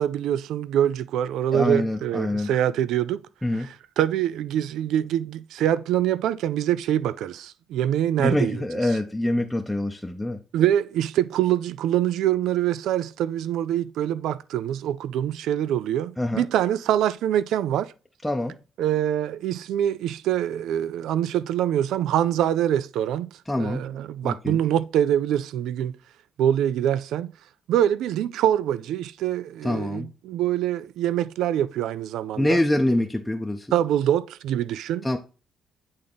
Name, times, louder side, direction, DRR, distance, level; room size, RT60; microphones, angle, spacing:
voice 1, 0.0-3.2 3.5-9.0 10.5-17.9 18.8-23.3 23.6-26.0 26.4-27.3 27.7-32.6 33.7-35.2, right 11 dB, 85° right, 0.3 m, -24 dB
voice 2, 1.5-2.5 3.4-3.7 8.2-10.4 16.2-16.5 18.2-18.6 23.5-23.8 24.2-24.6 29.6-30.1 32.4-33.7 35.0-35.2, left 1 dB, 5° left, 0.6 m, -25 dB
8.6 x 3.6 x 3.9 m
cardioid pair, 90°, 0 cm